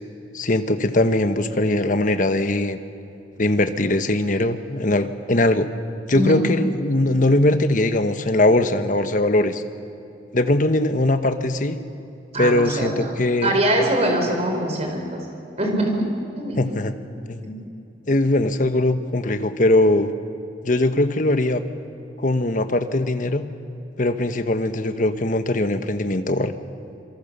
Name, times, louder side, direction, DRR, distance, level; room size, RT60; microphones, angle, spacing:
voice 1, 0.3-2.8 3.4-5.7 6.1-9.6 10.3-11.8 12.4-13.6 16.6-16.9 17.3-17.4 18.1-20.1 20.6-21.6 22.2-23.5 24.0-26.5, left 1 dB, 45° left, 9 dB, 1.2 m, -20 dB
voice 2, 6.1-6.4 12.3-13.1 13.4-15.2 15.6-16.0 16.4-16.6, right 1 dB, 35° right, 3 dB, 4.5 m, -22 dB
27.0 x 23.5 x 6.8 m, 2.8 s
head